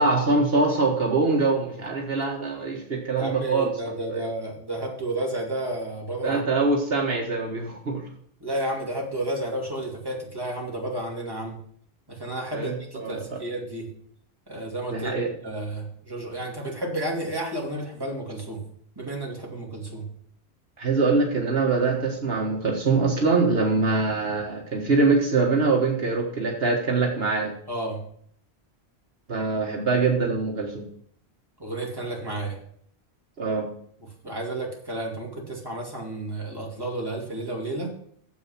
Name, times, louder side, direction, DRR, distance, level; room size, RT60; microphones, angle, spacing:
voice 1, 0.0-3.7 4.1-4.2 6.2-8.0 12.5-13.4 14.9-15.3 20.8-27.5 29.3-30.8 33.4-33.7, right 3 dB, 65° right, 0 dB, 1.6 m, -23 dB
voice 2, 3.2-6.4 8.4-11.6 12.1-13.9 14.5-15.1 15.4-18.6 19.0-20.1 27.7-28.0 31.6-32.6 34.2-37.9, right 1 dB, 20° right, -2 dB, 2.7 m, -31 dB
9.2 x 7.6 x 5.8 m, 0.64 s
omnidirectional pair, 1.1 m